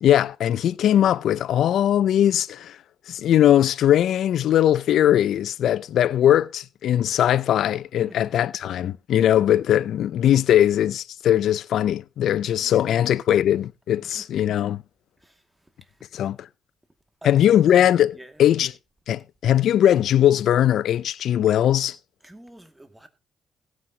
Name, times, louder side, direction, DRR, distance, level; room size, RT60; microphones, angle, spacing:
voice 1, 0.0-2.8 3.1-14.8 16.1-16.5 17.2-18.7 19.1-22.0, left 11 dB, 70° left, 0.6 m, -20 dB
voice 2, 12.5-13.0 14.1-14.2 15.2-15.4 15.8-15.9 17.2-17.6 18.1-18.3 22.2-23.1, right 1 dB, 10° right, 2.3 m, -47 dB
16.5 x 9.6 x 2.9 m
cardioid pair, 90°, 0 cm